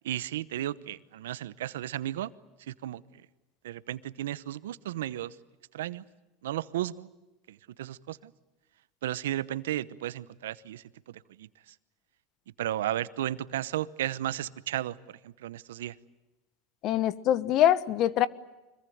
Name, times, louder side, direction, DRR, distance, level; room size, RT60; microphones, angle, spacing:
voice 1, 0.0-2.3 2.7-3.0 3.6-5.3 5.7-6.0 6.4-7.1 7.5-8.3 9.0-11.5 12.6-15.9, right 13 dB, 85° right, 17 dB, 0.9 m, -34 dB
voice 2, 16.8-18.3, left 11 dB, 50° left, 17 dB, 1.2 m, -24 dB
25.5 x 22.0 x 9.4 m, 1.1 s
supercardioid pair, 110°, 0 cm